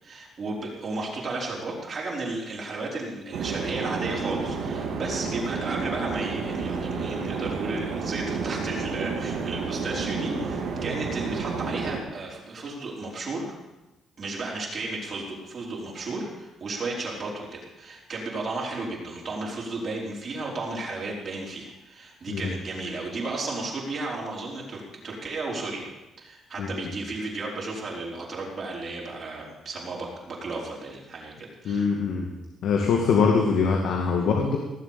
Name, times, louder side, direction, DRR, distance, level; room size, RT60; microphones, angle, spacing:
voice 1, 0.0-13.5 14.2-25.9 26.2-31.9 34.2-34.3, right 2 dB, 50° right, -3 dB, 4.9 m, -34 dB
sound 1, 3.3-12.0, right 4 dB, 80° right, 2.6 m, -30 dB
voice 2, 31.7-32.3 32.6-34.6, left 5 dB, 75° left, 1 dB, 2.0 m, -23 dB
18.5 x 7.6 x 7.6 m, 1.0 s
cardioid pair, 90°, 0 cm